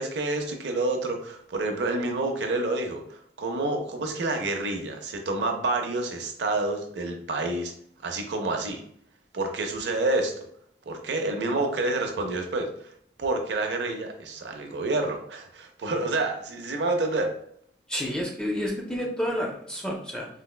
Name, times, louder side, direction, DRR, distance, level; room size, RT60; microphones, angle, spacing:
voice 1, 0.0-7.7 8.0-8.8 9.3-10.3 10.9-12.7 13.2-17.3, right 2 dB, 80° right, 4 dB, 0.5 m, -28 dB
voice 2, 17.9-20.3, equal, 5° left, -1 dB, 0.4 m, -30 dB
4.0 x 2.1 x 2.2 m, 0.66 s
head